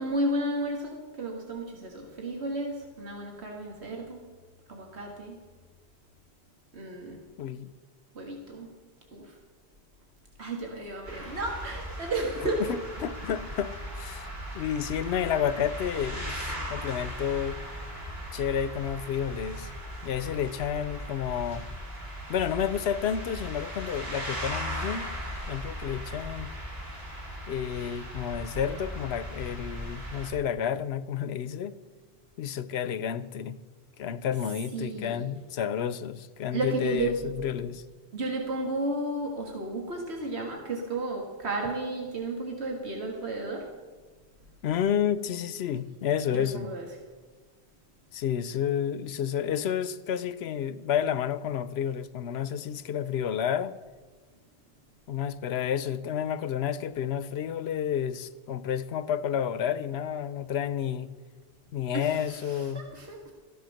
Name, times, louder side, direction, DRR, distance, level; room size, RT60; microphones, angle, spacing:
voice 1, 0.0-4.2 4.7-5.4 6.7-7.2 8.2-8.7 9.1-9.4 10.4-12.6 34.7-35.2 36.5-37.1 38.1-43.7 46.3-46.8 61.9-63.3, right 2 dB, 80° right, 1 dB, 2.0 m, -33 dB
voice 2, 7.4-7.7 12.4-14.3 14.5-17.6 18.3-19.7 20.0-21.6 22.3-25.1 25.5-26.5 27.5-31.8 32.4-33.6 34.0-37.8 44.6-46.7 48.1-53.7 55.1-61.1 61.7-62.8, left 8 dB, 80° left, 15 dB, 0.9 m, -30 dB
sound 1, 11.0-30.3, equal, 50° right, 3.4 m, -38 dB
14.0 x 10.5 x 6.4 m, 1.4 s
omnidirectional pair, 1.1 m